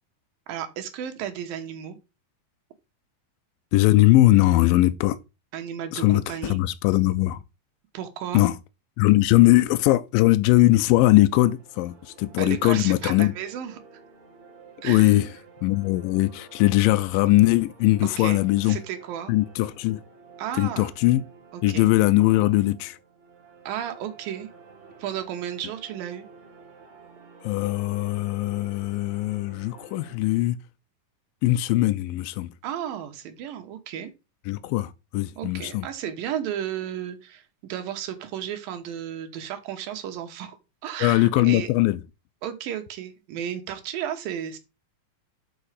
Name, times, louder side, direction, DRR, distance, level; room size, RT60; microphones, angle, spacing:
voice 1, 0.5-2.0 5.5-6.6 7.9-8.4 12.4-14.0 14.8-15.2 18.0-19.3 20.4-20.9 21.5-21.9 23.7-24.5 25.0-26.3 32.6-34.1 35.4-37.4 37.7-41.7 42.4-44.6, right 10 dB, 80° right, 2.8 m, -33 dB
voice 2, 3.7-5.2 5.9-7.4 8.3-8.5 9.0-13.3 14.8-15.3 15.6-18.8 19.3-20.0 20.6-21.2 21.6-23.0 27.4-30.6 31.4-32.5 34.5-35.9 41.0-42.0, left 17 dB, 85° left, 2.2 m, -20 dB
sound 1, 11.3-30.2, right 5 dB, 30° right, 1.4 m, -51 dB
6.9 x 5.0 x 4.8 m
omnidirectional pair, 4.1 m